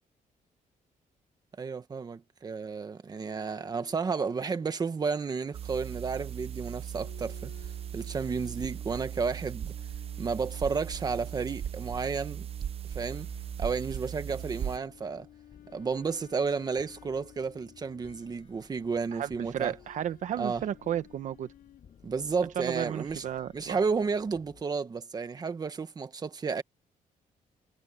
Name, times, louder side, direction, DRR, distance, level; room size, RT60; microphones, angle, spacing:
voice 1, 1.6-7.5 7.9-9.7 10.2-12.5 12.9-13.3 13.6-15.3 15.7-19.7 20.4-20.6 22.0-23.2 23.5-26.6, right 5 dB, 30° right, 1.5 m, -32 dB
sound 1, 3.1-5.3 7.0-13.0 14.4-18.4 19.3-22.4, left 12 dB, 85° left, 7.1 m, -56 dB
sound 2, 5.5-14.8, right 9 dB, 45° right, 0.8 m, -38 dB
sound 3, 12.1-24.6, left 7 dB, 40° left, 7.0 m, -58 dB
voice 2, 19.1-21.5 22.6-23.8, right 10 dB, 60° right, 1.0 m, -33 dB
cardioid pair, 155°, 14 cm